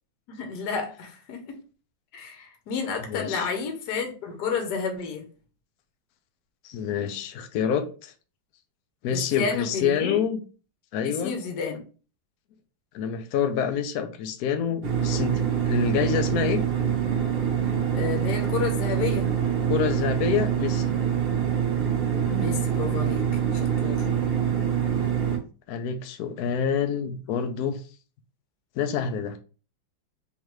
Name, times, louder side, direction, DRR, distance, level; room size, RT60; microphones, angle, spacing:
voice 1, 0.3-1.6 2.1-5.2 9.1-10.2 11.0-11.8 17.9-19.3 22.3-24.1, left 5 dB, 60° left, 1.3 m, -31 dB
voice 2, 3.0-3.5 6.6-8.1 9.0-10.4 10.9-11.3 12.9-16.6 19.7-20.9 25.7-27.8 28.8-29.4, left 8 dB, 85° left, 0.8 m, -27 dB
sound 1, 14.8-25.4, right 8 dB, 50° right, 0.7 m, -25 dB
3.7 x 3.2 x 3.1 m
omnidirectional pair, 2.2 m